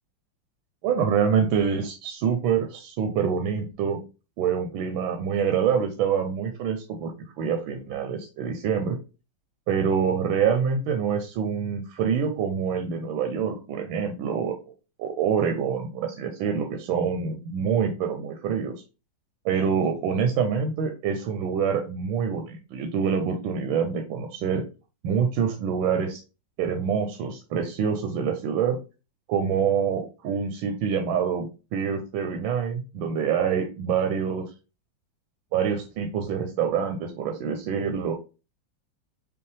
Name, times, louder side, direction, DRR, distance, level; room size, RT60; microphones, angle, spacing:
voice 1, 0.8-4.0 4.4-9.0 9.7-14.5 15.0-18.7 19.4-24.6 25.0-26.2 26.6-28.8 29.3-34.4 35.5-38.1, right 7 dB, 85° right, 4 dB, 1.4 m, -26 dB
5.5 x 2.2 x 3.2 m, 0.31 s
omnidirectional pair, 2.2 m